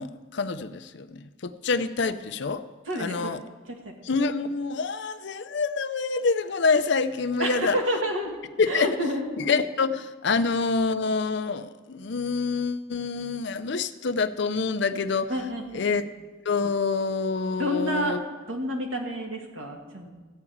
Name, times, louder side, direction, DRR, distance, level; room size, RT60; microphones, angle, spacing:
voice 1, 0.0-2.6 3.0-3.4 4.0-7.8 8.6-9.0 9.4-15.3 15.7-16.0 16.5-18.2, left 4 dB, 60° left, 11 dB, 0.5 m, -26 dB
voice 2, 2.9-3.3 3.7-3.9 7.4-8.4 8.7-9.3 15.3-15.9 17.6-18.2 18.5-20.1, equal, 80° right, 1 dB, 1.9 m, -29 dB
14.5 x 4.9 x 8.5 m, 1.3 s
head